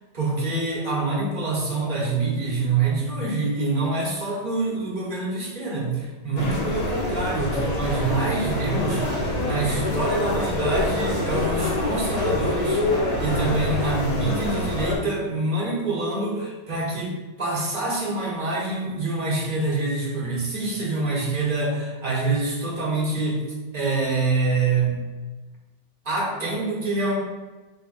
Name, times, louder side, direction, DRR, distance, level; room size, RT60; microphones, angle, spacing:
voice 1, 0.1-23.4 23.7-25.0 26.0-27.2, right 3 dB, 40° right, -4 dB, 1.0 m, -26 dB
sound 1, 6.4-15.0, left 1 dB, 40° left, 0.6 m, -25 dB
4.5 x 3.5 x 2.5 m, 1.2 s
omnidirectional pair, 1.4 m